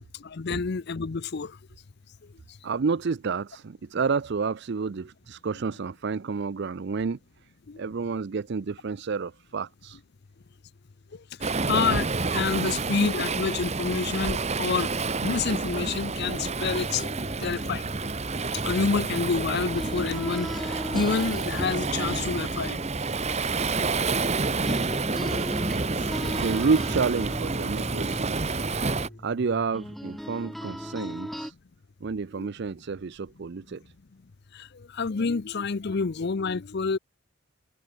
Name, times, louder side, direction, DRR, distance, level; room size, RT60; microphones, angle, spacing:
voice 1, 0.1-1.6 7.7-7.8 8.1-8.2 11.1-17.1 17.4-18.1 18.5-22.8 24.1-24.5 26.0-26.2 28.9-29.2 32.3-32.5 34.5-37.0, left 5 dB, 50° left, 0.5 m, -29 dB
voice 2, 2.6-7.2 7.8-10.0 26.2-28.4 29.2-31.5 32.0-33.8, right 5 dB, 50° right, 0.5 m, -29 dB
Waves surf, 11.4-29.1, right 3 dB, 30° right, 1.0 m, -29 dB
sound 1, 16.6-24.4 24.7-31.5, equal, ahead, 3.8 m, -38 dB
head